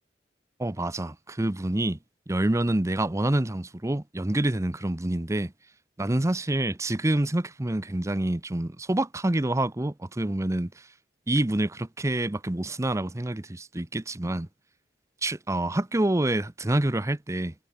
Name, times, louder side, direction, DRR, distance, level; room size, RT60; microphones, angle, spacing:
voice 1, 0.6-2.0 2.3-5.5 6.0-10.9 11.3-14.5 15.2-17.5, right 1 dB, 15° right, 0.7 m, -27 dB
head